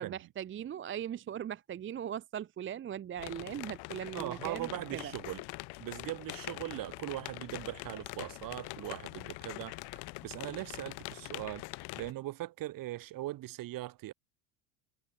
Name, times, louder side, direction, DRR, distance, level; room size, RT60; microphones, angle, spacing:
voice 1, 0.0-5.1, right 10 dB, 25° right, 0.9 m, -39 dB
sound 1, 3.2-12.1, left 25 dB, 60° left, 3.4 m, -44 dB
voice 2, 4.1-5.4 5.8-9.8 10.2-14.1, right 16 dB, 45° right, 2.2 m, -40 dB
supercardioid pair, 115°, 45 cm